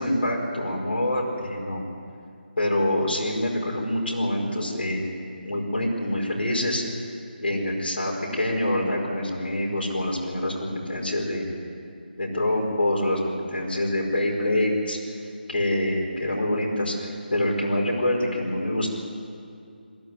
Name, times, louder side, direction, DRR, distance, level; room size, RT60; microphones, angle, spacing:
voice 1, 0.0-1.8 2.6-5.0 5.4-6.8 7.4-11.5 12.2-15.0 15.5-18.9, left 1 dB, 75° left, -2 dB, 5.0 m, -26 dB
22.0 x 14.0 x 9.5 m, 2.4 s
figure-of-eight pair, 160°, 6 cm